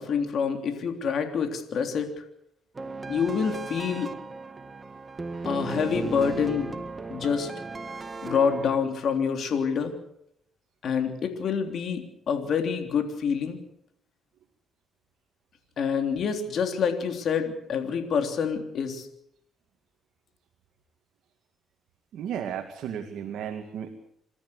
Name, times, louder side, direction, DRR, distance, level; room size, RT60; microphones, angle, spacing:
voice 1, 0.0-2.2 3.1-4.1 5.5-6.7 7.1-7.5 8.2-10.0 10.8-13.6 15.8-19.1, left 6 dB, 60° left, 5 dB, 3.5 m, -27 dB
sound 1, 2.7-8.8, right 3 dB, 30° right, 1.9 m, -36 dB
voice 2, 22.1-23.9, right 8 dB, 75° right, 4 dB, 2.2 m, -34 dB
27.5 x 13.5 x 8.3 m, 0.74 s
cardioid pair, 90°, 0 cm